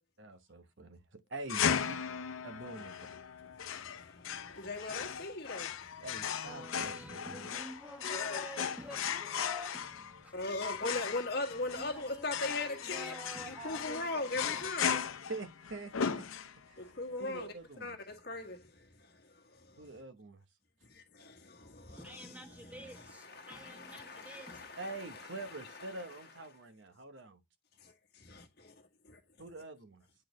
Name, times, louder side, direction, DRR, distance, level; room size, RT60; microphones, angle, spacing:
voice 1, 0.2-1.0 1.3-2.0 2.4-3.2 6.0-7.5 15.3-16.3 16.7-16.9 17.2-18.0 19.8-20.4 24.8-27.4 29.4-30.0, right 2 dB, 60° right, 0.9 m, -45 dB
sound 1, 1.5-16.8, left 7 dB, 85° left, 0.6 m, -37 dB
voice 2, 3.7-5.9 8.0-8.4 10.3-13.2 13.4-15.3 16.8-17.5 17.8-19.9 20.9-22.3 22.6-25.9 27.8-28.7 29.0-29.2, left 2 dB, 50° left, 1.5 m, -40 dB
voice 3, 6.4-10.4 10.8-10.9 11.5-14.7 21.9-24.7, equal, 5° right, 1.1 m, -49 dB
8.7 x 4.2 x 3.1 m
head